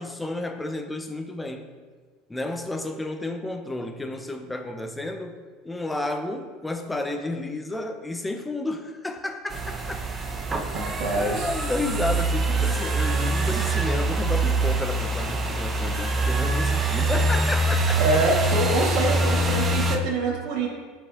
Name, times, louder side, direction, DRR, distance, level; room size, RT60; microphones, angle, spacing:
voice 1, 0.0-1.7 2.3-10.0 11.1-18.0, left 2 dB, 10° left, 6 dB, 0.8 m, -31 dB
sound 1, 9.5-20.0, right 2 dB, 25° right, 1.0 m, -24 dB
voice 2, 10.7-11.5 17.9-20.7, right 2 dB, 65° right, -2 dB, 2.0 m, -25 dB
14.0 x 5.2 x 2.9 m, 1.5 s
supercardioid pair, 100°, 0 cm